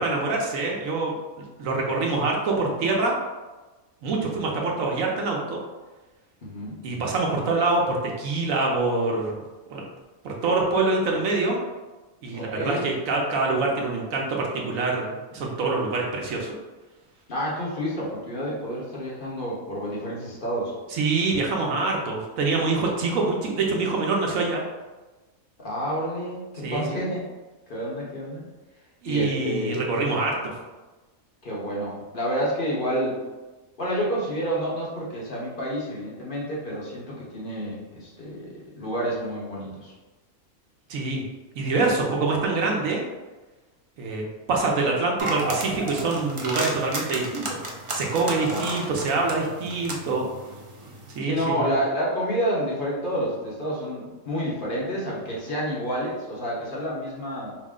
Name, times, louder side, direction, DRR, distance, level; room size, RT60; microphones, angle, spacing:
voice 1, 0.0-3.1 4.0-5.6 6.8-9.3 9.7-9.8 10.2-11.6 12.2-16.5 20.9-24.6 26.6-27.0 29.0-30.5 40.9-41.2 41.6-43.0 44.0-47.6 47.9-50.3 51.1-51.7, right 3 dB, 75° right, -1 dB, 1.1 m, -25 dB
voice 2, 6.4-6.8 12.3-12.8 17.3-20.7 25.6-27.2 27.7-28.4 29.0-29.8 31.4-33.2 33.8-39.9 48.4-48.7 51.2-57.5, equal, 40° left, -5 dB, 1.1 m, -29 dB
sound 1, 45.2-51.2, right 2 dB, 50° right, 0.3 m, -33 dB
4.9 x 2.1 x 3.6 m, 1.2 s
omnidirectional pair, 1.4 m